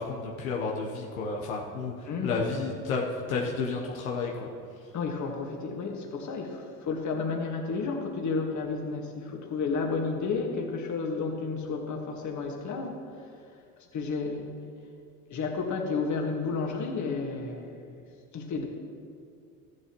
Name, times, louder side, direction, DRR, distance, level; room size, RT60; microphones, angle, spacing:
voice 1, 0.0-1.9 2.2-4.5, left 4 dB, 90° left, -1 dB, 1.1 m, -31 dB
voice 2, 2.0-2.3 4.9-13.0 13.9-14.6 15.3-18.0 18.3-18.7, left 4 dB, 45° left, 2 dB, 1.8 m, -32 dB
13.5 x 11.0 x 3.1 m, 2.3 s
hypercardioid pair, 75°, 41 cm